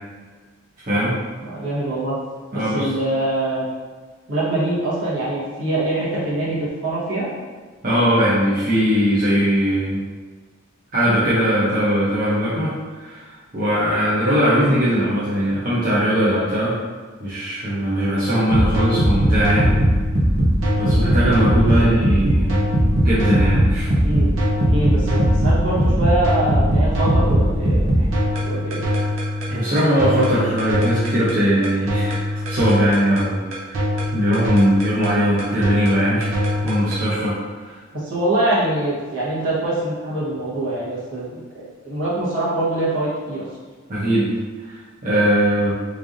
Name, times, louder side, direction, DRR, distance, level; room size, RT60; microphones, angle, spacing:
voice 1, 0.8-1.2 2.5-2.9 7.8-10.0 10.9-16.8 17.2-19.7 20.8-22.6 23.0-23.9 29.5-32.2 32.5-33.8 34.1-36.3 36.6-37.7 43.9-44.3 44.6-45.7, equal, 45° right, -10 dB, 0.7 m, -20 dB
voice 2, 1.4-2.1 2.5-3.7 4.3-7.3 21.8-22.0 24.0-24.3 24.6-28.1 28.4-28.8 37.9-43.4, right 1 dB, 70° right, -7 dB, 1.2 m, -24 dB
sound 1, 18.5-37.0, equal, 85° right, 0.9 m, -20 dB
3.7 x 3.3 x 2.6 m, 1.4 s
head